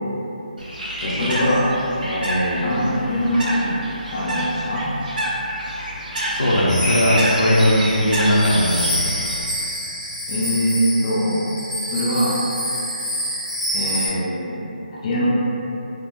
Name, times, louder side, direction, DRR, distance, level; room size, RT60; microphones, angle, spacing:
Bird, 0.6-9.4, right 1 dB, 65° right, 0.7 m, -28 dB
voice 1, 1.0-1.7 2.0-3.7 4.1-4.9 10.3-11.4 11.9-12.4 13.7-14.7 15.0-15.3, equal, 35° left, -9 dB, 0.5 m, -22 dB
voice 2, 6.3-9.2, equal, 75° left, -6 dB, 0.7 m, -18 dB
sound 1, 6.7-14.1, equal, 5° right, 0.7 m, -27 dB
3.6 x 2.2 x 2.4 m, 2.9 s
figure-of-eight pair, 165°, 5 cm